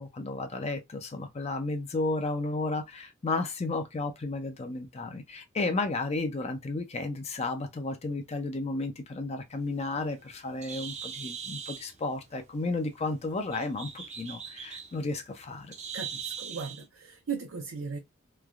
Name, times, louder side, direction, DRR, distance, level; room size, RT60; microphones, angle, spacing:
voice 1, 0.0-15.7, left 3 dB, 30° left, 0.5 m, -33 dB
Bird, 9.6-16.8, right 7 dB, 35° right, 0.6 m, -42 dB
voice 2, 15.9-18.0, right 5 dB, 75° right, 0.6 m, -37 dB
3.2 x 2.2 x 2.4 m
head